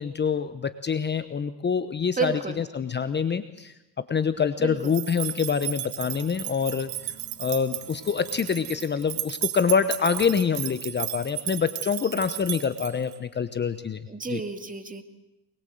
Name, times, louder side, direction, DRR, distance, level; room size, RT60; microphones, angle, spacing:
voice 1, 0.0-7.1 7.4-14.0 14.3-14.4, left 6 dB, 25° left, 11 dB, 1.0 m, -26 dB
voice 2, 2.2-2.6 4.6-4.8 14.1-15.0, right 4 dB, 20° right, 7 dB, 2.3 m, -30 dB
sound 1, 4.8-13.2, right 15 dB, 85° right, 2.1 m, -34 dB
sound 2, 5.9-10.8, left 3 dB, 55° left, 5.3 m, -54 dB
23.5 x 21.5 x 7.8 m, 0.93 s
cardioid pair, 110°, 42 cm